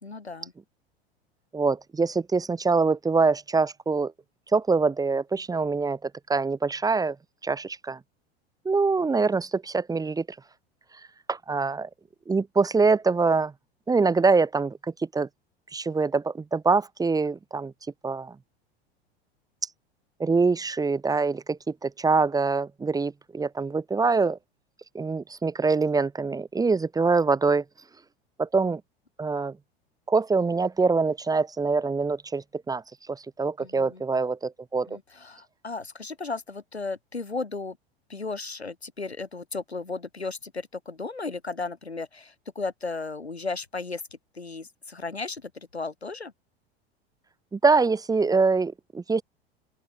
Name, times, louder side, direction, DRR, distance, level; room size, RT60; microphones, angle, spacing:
voice 1, 0.0-0.5 33.6-34.0 34.9-37.8 38.1-44.0 44.3-46.3, left 3 dB, 90° left, 1.4 m, -35 dB
voice 2, 1.5-4.1 4.5-7.2 7.4-8.0 8.6-10.2 11.3-11.9 12.3-13.5 13.9-14.8 15.1-15.3 15.7-17.7 18.0-18.3 20.2-24.4 24.9-27.6 28.4-28.8 29.2-29.5 30.1-32.8 33.1-35.0 47.5-49.2, right 4 dB, 10° right, 1.1 m, -24 dB
open air
figure-of-eight pair, 85°, 31 cm